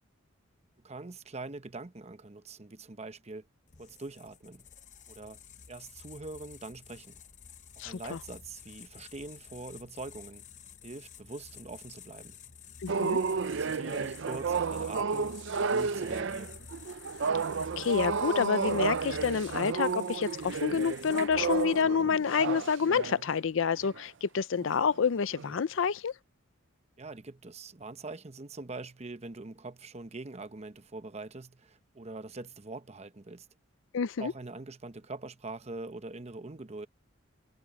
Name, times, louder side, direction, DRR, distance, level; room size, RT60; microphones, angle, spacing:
voice 1, 0.8-3.5 3.8-4.6 5.1-5.4 5.7-7.2 7.8-10.4 10.8-12.4 13.5-16.6 27.0-33.5 34.2-36.9, right 3 dB, 30° right, 0.8 m, -43 dB
sound 1, 3.7-22.0, left 6 dB, 35° left, 0.8 m, -50 dB
voice 2, 7.8-8.2 12.8-13.2 17.8-26.1 33.9-34.3, left 6 dB, 65° left, 0.5 m, -28 dB
sound 2, 12.9-23.3 23.8-24.0 24.6-24.9 25.3-25.6, right 5 dB, 60° right, 0.5 m, -32 dB
head